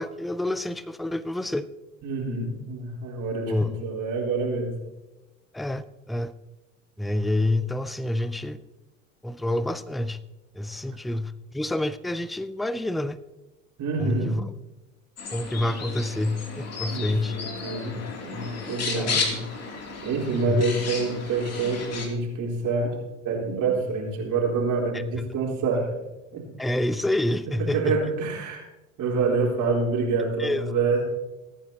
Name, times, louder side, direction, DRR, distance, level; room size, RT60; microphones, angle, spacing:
voice 1, 0.0-1.7 3.5-3.7 5.5-6.3 7.0-8.6 9.2-10.2 10.5-13.2 14.0-14.4 15.3-17.3 19.0-19.2 20.5-20.6 24.9-25.0 26.6-27.9 29.1-29.2 30.4-30.6, left 1 dB, ahead, 16 dB, 0.3 m, -27 dB
voice 2, 2.0-4.7 13.8-14.4 16.9-18.0 18.2-19.4 19.7-23.0 23.2-26.0 26.3-26.5 27.7-28.6 29.0-31.0, right 4 dB, 50° right, -1 dB, 3.8 m, -27 dB
sound 1, 15.2-22.1, left 4 dB, 40° left, 2.9 m, -33 dB
21.5 x 9.2 x 2.9 m, 1.0 s
hypercardioid pair, 80°, 39 cm